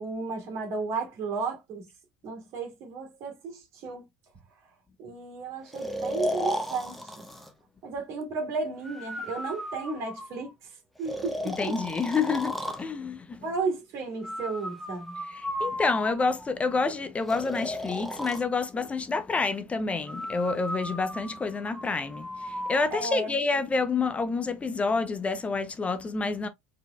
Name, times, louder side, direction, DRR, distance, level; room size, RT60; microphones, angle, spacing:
voice 1, 0.0-1.8 2.2-4.1 5.0-7.2 7.8-10.5 11.0-11.6 13.4-15.2 22.9-23.4, right 4 dB, 55° right, 2.3 m, -33 dB
Breathing, 5.7-7.5 8.8-10.5 11.1-12.9 14.2-16.5 17.3-18.4 20.1-22.9, equal, ahead, 1.1 m, -35 dB
voice 2, 11.5-13.4 15.3-26.5, left 4 dB, 20° left, 0.7 m, -28 dB
4.8 x 3.9 x 2.3 m
hypercardioid pair, 75°, 6 cm